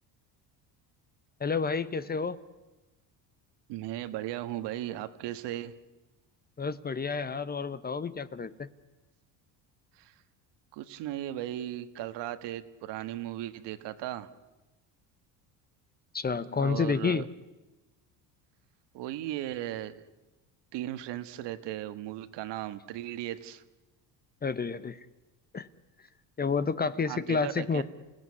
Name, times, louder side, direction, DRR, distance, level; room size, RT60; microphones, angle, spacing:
voice 1, 1.4-2.4 6.6-8.7 16.1-17.2 24.4-25.0 25.5-25.7 26.4-27.8, left 5 dB, 20° left, 15 dB, 0.9 m, -30 dB
voice 2, 3.7-5.7 9.9-10.1 10.7-14.3 16.6-17.3 18.9-20.0 20.7-23.6 27.0-27.8, right 13 dB, 75° right, 11 dB, 1.6 m, -36 dB
28.5 x 17.0 x 9.7 m, 1.1 s
cardioid pair, 115°, 42 cm